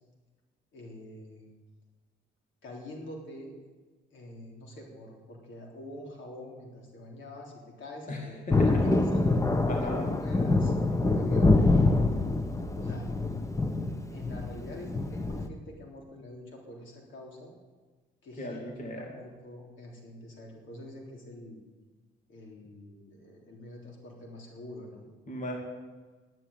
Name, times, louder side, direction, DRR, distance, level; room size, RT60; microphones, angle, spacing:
voice 1, 0.7-1.5 2.6-3.6 4.1-9.2 9.8-11.6 12.7-13.1 14.1-17.5 18.2-18.7 18.9-21.6 22.3-25.0, left 1 dB, 75° left, 0 dB, 3.5 m, -45 dB
voice 2, 8.1-8.9 9.7-10.1 18.4-19.2 25.3-25.6, left 1 dB, 40° left, 0 dB, 2.6 m, -37 dB
Thunder, 8.5-15.5, left 2 dB, 15° left, 1.1 m, -25 dB
11.0 x 8.9 x 9.3 m, 1.3 s
cardioid pair, 90°, 20 cm